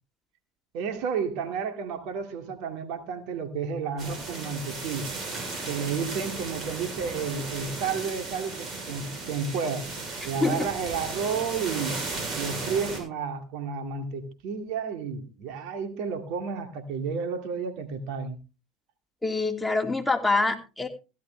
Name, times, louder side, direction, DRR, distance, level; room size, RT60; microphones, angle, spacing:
voice 1, 0.7-5.1 5.7-9.9 10.2-12.0 12.4-18.4, right 6 dB, 65° right, 7 dB, 2.3 m, -31 dB
sound 1, 4.0-13.0, right 3 dB, 45° right, 6.8 m, -35 dB
voice 2, 10.2-10.7 19.2-20.9, left 3 dB, 10° left, 3 dB, 2.6 m, -26 dB
16.0 x 12.0 x 3.3 m, 0.30 s
hypercardioid pair, 70°, 0 cm